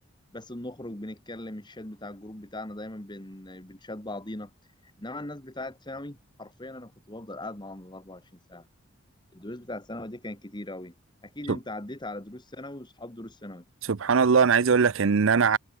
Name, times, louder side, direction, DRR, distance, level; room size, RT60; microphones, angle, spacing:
voice 1, 0.3-4.5 5.0-8.7 9.3-10.9 11.2-13.7, left 1 dB, 20° left, 1.8 m, -39 dB
voice 2, 13.9-15.6, right 5 dB, 60° right, 0.6 m, -21 dB
head